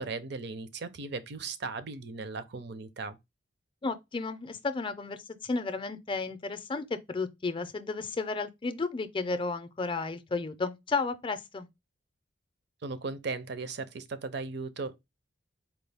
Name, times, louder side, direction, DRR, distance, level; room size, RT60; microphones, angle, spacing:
voice 1, 0.0-3.2 12.8-15.0, right 4 dB, 60° right, 0.6 m, -37 dB
voice 2, 3.8-11.7, left 3 dB, 25° left, 0.5 m, -33 dB
4.4 x 2.3 x 3.4 m
head